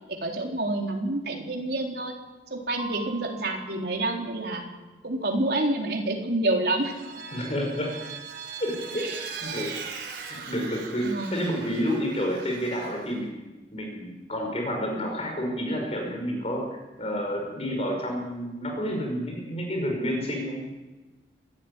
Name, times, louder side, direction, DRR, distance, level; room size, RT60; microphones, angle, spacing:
voice 1, 0.1-2.1 2.5-4.7 5.0-6.9 9.0-9.2 11.0-11.4, right 2 dB, 60° right, 1 dB, 4.0 m, -28 dB
Mallet percussion, 2.8-5.4, right 5 dB, 35° right, 5.8 m, -45 dB
Vehicle, 6.8-13.2, right 6 dB, 80° right, 3.5 m, -40 dB
voice 2, 7.3-7.9 8.6-9.0 9.4-9.7 10.3-13.4 13.7-20.8, equal, 35° left, 1 dB, 5.6 m, -30 dB
25.5 x 13.5 x 10.0 m, 1.2 s
head